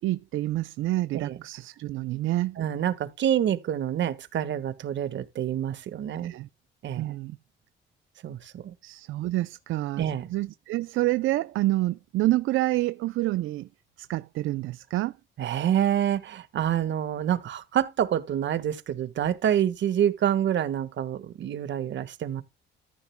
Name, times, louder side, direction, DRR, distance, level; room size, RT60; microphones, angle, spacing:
voice 1, 0.0-2.6 6.2-6.5 7.0-7.4 8.8-10.0 10.3-13.7 14.0-15.1, right 17 dB, 80° right, 0.5 m, -28 dB
voice 2, 2.6-6.3 6.8-7.1 8.2-8.7 10.0-10.3 15.4-22.4, right 10 dB, 65° right, 1.5 m, -27 dB
14.0 x 10.5 x 2.2 m
cardioid pair, 90°, 20 cm